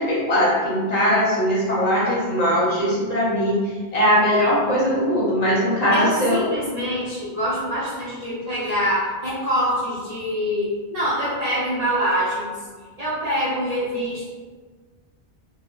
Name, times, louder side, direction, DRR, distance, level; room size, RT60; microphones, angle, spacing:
voice 1, 0.0-3.6 3.9-6.4, equal, 45° left, -7 dB, 0.7 m, -20 dB
voice 2, 5.9-12.5 13.0-14.3, equal, 50° right, -8 dB, 0.6 m, -25 dB
2.1 x 2.0 x 3.6 m, 1.4 s
omnidirectional pair, 1.1 m